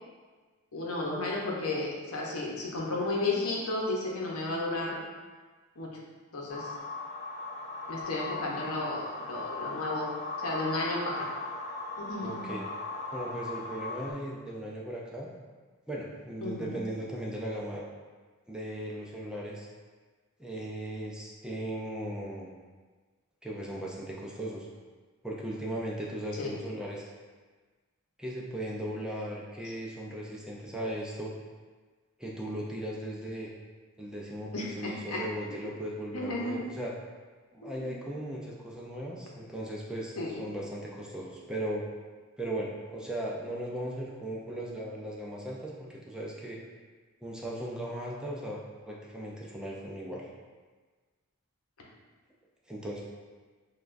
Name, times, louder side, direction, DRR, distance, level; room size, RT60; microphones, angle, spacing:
voice 1, 0.7-5.0 5.8-6.0 6.3-6.7 7.9-10.1 10.4-11.3 12.0-12.4 16.4-16.8 26.4-26.5 29.6-29.7 34.5-35.7 36.1-36.7 37.6-37.9 40.2-40.4, left 2 dB, 85° left, -3 dB, 0.8 m, -33 dB
sound 1, 6.5-14.1, left 3 dB, 45° left, 1.2 m, -38 dB
voice 2, 12.2-12.6 13.1-15.3 15.9-17.9 18.5-19.7 20.4-22.5 23.4-24.7 25.2-27.0 28.2-31.3 32.2-33.5 34.0-36.9 37.5-41.8 42.4-46.6 47.2-48.6 48.9-50.3 52.7-53.0, right 1 dB, 5° right, -4 dB, 0.4 m, -37 dB
6.5 x 2.3 x 2.5 m, 1.4 s
head